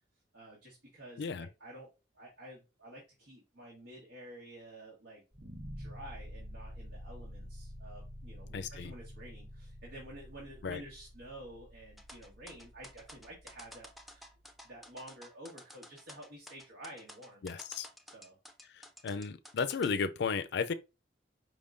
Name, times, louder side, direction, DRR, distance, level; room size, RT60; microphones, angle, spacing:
voice 1, 0.3-1.9 2.1-14.2 14.6-17.4 18.0-18.4, right 1 dB, 85° right, 1.5 m, -51 dB
sound 1, 5.3-14.4, equal, 35° right, 0.9 m, -49 dB
voice 2, 8.5-8.9 10.6-10.8 17.4-17.9 19.0-20.7, left 5 dB, 65° left, 0.4 m, -34 dB
sound 2, 12.0-19.9, equal, ahead, 0.5 m, -52 dB
4.9 x 3.6 x 2.5 m
head